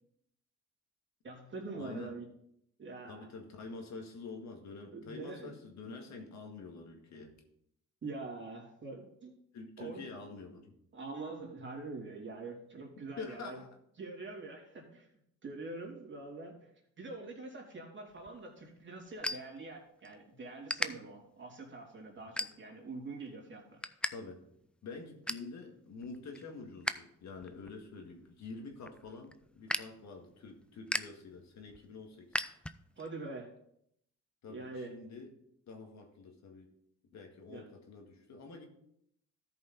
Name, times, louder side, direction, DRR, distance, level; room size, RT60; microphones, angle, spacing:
voice 1, 1.2-2.3 2.8-3.3 4.9-5.6 8.0-9.4 9.8-10.1 10.9-13.6 14.0-15.1 15.4-16.7 17.0-23.8 33.0-33.5 34.5-34.9 37.5-37.7, right 3 dB, 40° right, -1 dB, 2.9 m, -44 dB
voice 2, 1.8-2.1 3.1-7.3 9.5-10.7 13.2-13.8 24.1-24.4 24.8-32.5 34.4-35.3 35.7-36.7 37.1-38.6, left 4 dB, 65° left, 3 dB, 1.9 m, -47 dB
sound 1, 18.1-20.2 20.4-20.9 21.5-21.7 22.2-22.9 23.3-24.1 24.4-24.5 24.9-25.5 26.0-26.9 27.3-33.1, left 1 dB, 5° left, 0.4 m, -39 dB
13.0 x 5.5 x 4.0 m, 0.73 s
cardioid pair, 90°, 30 cm